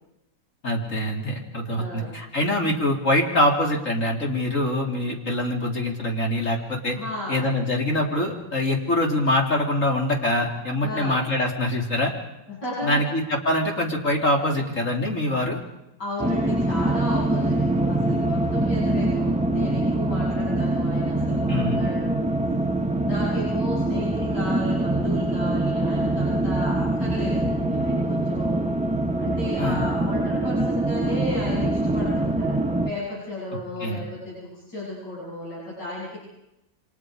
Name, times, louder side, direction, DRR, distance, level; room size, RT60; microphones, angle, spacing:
voice 1, 0.6-7.0 7.3-12.1 12.8-15.6 21.5-21.8 29.6-29.8 33.8-34.0, left 1 dB, 45° left, 0 dB, 3.3 m, -24 dB
voice 2, 1.7-2.1 7.0-7.5 10.8-11.2 12.5-13.0 16.0-22.2 23.0-28.6 29.2-36.2, left 1 dB, 80° left, -7 dB, 8.8 m, -33 dB
sound 1, 16.2-32.9, right 2 dB, 10° right, 0.5 m, -24 dB
29.0 x 26.0 x 5.0 m, 0.89 s
omnidirectional pair, 1.8 m